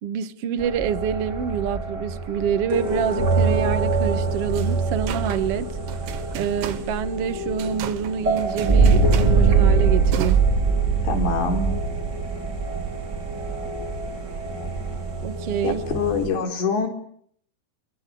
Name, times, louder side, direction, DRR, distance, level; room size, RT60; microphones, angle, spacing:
voice 1, 0.0-5.7 6.3-10.4 15.2-15.8, right 8 dB, 55° right, 1.8 m, -26 dB
sound 1, 0.6-16.3, right 4 dB, 25° right, 4.0 m, -23 dB
sound 2, 4.5-10.4, right 11 dB, 85° right, 3.7 m, -37 dB
voice 2, 11.0-11.7 15.6-16.9, left 4 dB, 85° left, 6.5 m, -24 dB
29.0 x 23.5 x 8.7 m
omnidirectional pair, 4.9 m